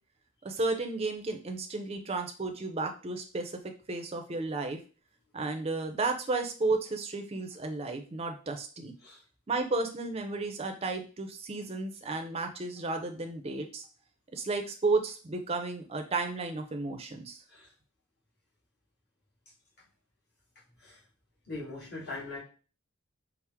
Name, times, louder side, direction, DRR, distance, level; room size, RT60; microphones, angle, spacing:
voice 1, 0.4-3.5 3.9-4.8 5.3-8.9 9.5-13.9 14.3-17.4, right 3 dB, 30° right, 5 dB, 0.4 m, -33 dB
voice 2, 21.5-22.4, left 2 dB, 50° left, -6 dB, 1.8 m, -40 dB
4.4 x 2.0 x 3.4 m, 0.37 s
head